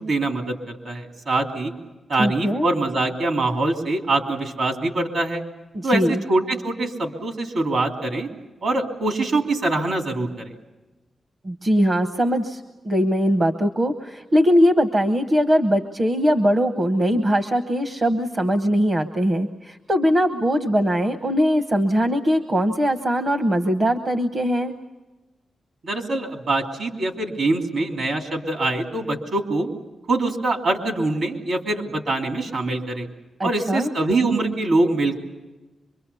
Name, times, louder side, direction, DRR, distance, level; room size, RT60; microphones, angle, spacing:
voice 1, 0.0-1.7 2.1-5.4 5.8-8.3 8.6-10.5 25.8-29.7 30.1-33.1 33.4-35.2, right 2 dB, 60° right, 3 dB, 3.0 m, -24 dB
voice 2, 2.2-2.7 5.7-6.2 11.4-24.7 33.4-33.9, equal, 35° right, 7 dB, 0.9 m, -21 dB
25.0 x 23.0 x 6.9 m, 1.2 s
wide cardioid pair, 130°, 0 cm